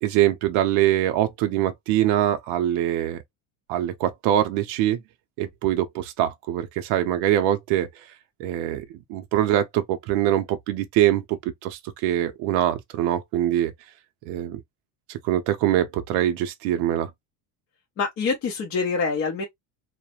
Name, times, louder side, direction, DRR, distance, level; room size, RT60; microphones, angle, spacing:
voice 1, 0.0-3.2 3.7-5.0 5.4-7.9 8.4-8.8 9.1-13.7 14.3-14.6 15.1-17.1, right 12 dB, 65° right, 0.5 m, -23 dB
voice 2, 18.0-19.4, left 4 dB, 30° left, 0.6 m, -25 dB
2.3 x 2.1 x 2.8 m
cardioid pair, 170°, 46 cm